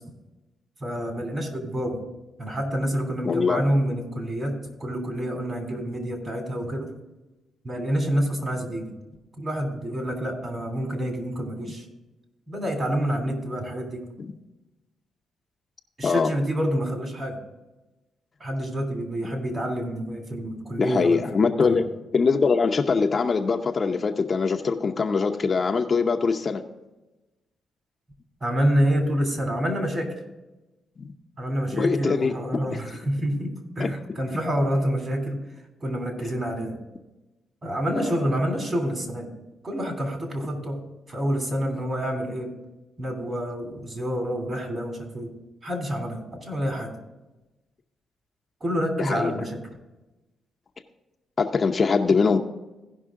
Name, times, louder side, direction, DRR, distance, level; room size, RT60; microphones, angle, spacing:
voice 1, 0.8-2.0 2.4-6.9 7.6-8.9 9.4-11.8 12.5-14.0 16.0-17.4 18.4-21.8 28.4-30.1 31.4-35.4 35.8-36.8 37.6-39.3 39.6-40.8 41.1-42.5 43.0-45.3 45.6-46.9 48.6-49.6, equal, 35° right, 3 dB, 3.0 m, -27 dB
voice 2, 3.2-3.6 14.2-14.3 16.0-16.3 20.8-21.8 22.1-26.6 31.0-31.1 31.7-32.3 33.8-33.9 36.2-36.3 38.0-38.2 49.0-49.3 51.4-52.4, left 4 dB, 40° left, 3 dB, 0.7 m, -23 dB
16.5 x 5.5 x 3.7 m, 1.1 s
cardioid pair, 80°, 0 cm